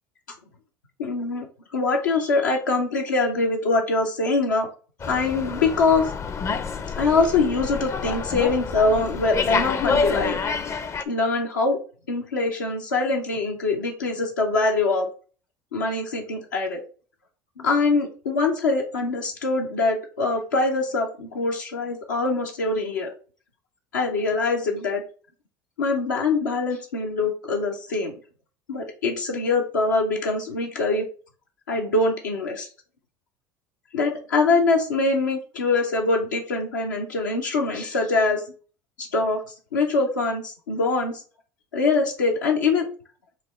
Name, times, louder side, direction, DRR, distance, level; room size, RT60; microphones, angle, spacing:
voice 1, 1.0-1.5 1.7-4.7 5.1-6.1 7.0-10.4 11.1-11.8 12.1-15.1 15.7-16.8 17.6-23.1 23.9-25.0 25.8-28.1 28.7-31.1 31.7-32.7 33.9-38.4 39.0-41.2 41.7-42.9, left 3 dB, 90° left, 0 dB, 0.7 m, -23 dB
Slam, 5.0-11.0, left 5 dB, 30° left, 0.4 m, -28 dB
5.7 x 2.2 x 3.1 m, 0.38 s
hypercardioid pair, 75°, 10 cm